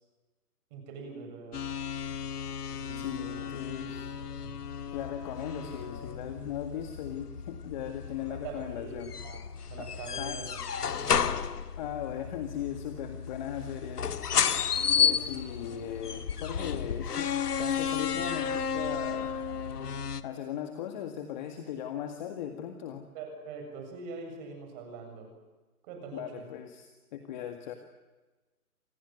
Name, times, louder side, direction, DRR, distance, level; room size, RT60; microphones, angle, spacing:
voice 1, 0.7-1.6 2.7-3.4 3.8-4.5 8.3-9.0 9.2-9.4 9.7-11.2 23.1-25.3 25.8-26.4, right 4 dB, 30° right, 4 dB, 7.4 m, -44 dB
sound 1, 1.5-20.2, left 7 dB, 85° left, 1.7 m, -33 dB
voice 2, 3.0-4.1 4.9-9.1 9.8-9.9 10.2-10.4 11.8-14.3 15.0-17.3 17.6-19.3 20.2-23.1 26.1-27.7, left 10 dB, 30° left, 6 dB, 2.0 m, -38 dB
27.5 x 19.5 x 9.4 m, 1.2 s
hypercardioid pair, 160°, 46 cm